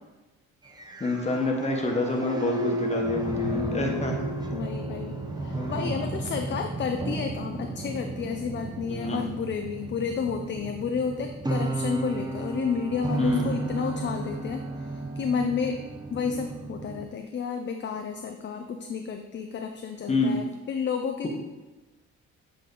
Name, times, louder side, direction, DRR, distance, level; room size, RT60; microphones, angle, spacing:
sound 1, 0.6-17.1, right 2 dB, 15° right, 0.7 m, -34 dB
voice 1, 1.0-4.2 5.5-5.9 8.9-9.2 13.2-13.5 20.1-20.4, left 2 dB, 20° left, 1 dB, 1.2 m, -27 dB
sound 2, 2.2-10.7, left 1 dB, 65° right, 0.6 m, -36 dB
voice 2, 3.5-4.0 4.5-15.8 16.1-21.3, left 6 dB, 40° left, 5 dB, 0.4 m, -31 dB
7.7 x 3.3 x 3.9 m, 1.2 s
cardioid pair, 90°, 30 cm